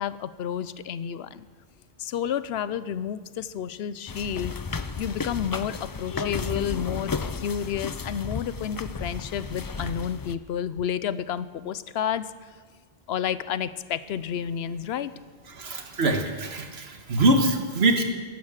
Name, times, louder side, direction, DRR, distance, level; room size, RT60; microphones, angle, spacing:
voice 1, 0.0-1.5 2.0-4.6 5.0-12.3 13.1-15.1, left 9 dB, 85° left, 16 dB, 0.9 m, -30 dB
sound 1, 4.1-10.3, left 4 dB, 35° left, 0.3 m, -33 dB
voice 2, 15.5-18.0, right 1 dB, 85° right, 5 dB, 1.7 m, -23 dB
14.0 x 11.5 x 7.3 m, 1.5 s
omnidirectional pair, 1.0 m